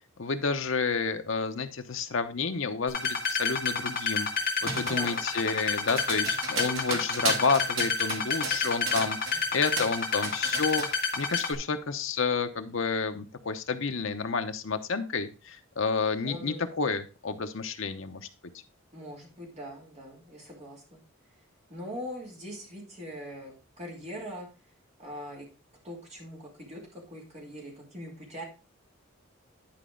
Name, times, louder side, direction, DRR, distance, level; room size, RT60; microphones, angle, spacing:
voice 1, 0.2-10.9 11.1-18.3, left 4 dB, 65° left, 8 dB, 0.8 m, -30 dB
sound 1, 2.9-11.5, left 4 dB, 45° left, 1.6 m, -29 dB
sound 2, 4.6-9.4 9.7-10.9, right 3 dB, 65° right, 2.1 m, -34 dB
voice 2, 4.7-5.2 16.2-16.6 18.9-21.0 21.7-24.5 25.0-25.5 25.8-28.4, equal, 30° right, -1 dB, 2.7 m, -42 dB
10.5 x 5.0 x 3.8 m, 0.32 s
head